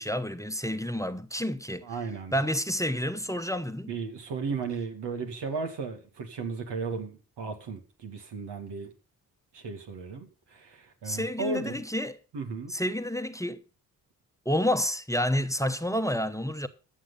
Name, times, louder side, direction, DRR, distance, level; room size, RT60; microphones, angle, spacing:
voice 1, 0.0-1.8 2.3-3.9 11.0-12.2 12.7-13.6 14.4-16.7, equal, 10° left, 1.1 m, -29 dB
voice 2, 1.8-2.3 3.9-7.1 7.4-8.9 9.5-11.8 12.3-12.7, right 4 dB, 80° right, 2.4 m, -35 dB
15.0 x 6.5 x 5.6 m
supercardioid pair, 40°, 41 cm